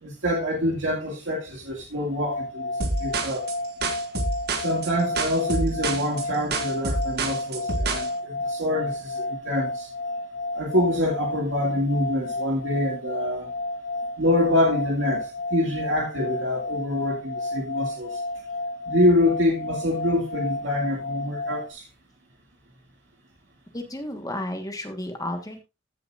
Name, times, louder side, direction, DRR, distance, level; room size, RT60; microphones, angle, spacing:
voice 1, 0.0-2.7 3.0-3.5 4.6-9.9 10.5-13.5 14.2-18.2 18.9-21.8, left 1 dB, 85° right, 2.2 m, -25 dB
sound 1, 2.1-21.7, left 2 dB, 65° left, 1.5 m, -32 dB
sound 2, 2.8-8.1, right 3 dB, 55° right, 1.7 m, -28 dB
voice 2, 23.7-25.6, left 1 dB, 20° left, 1.4 m, -32 dB
15.0 x 6.9 x 2.5 m
head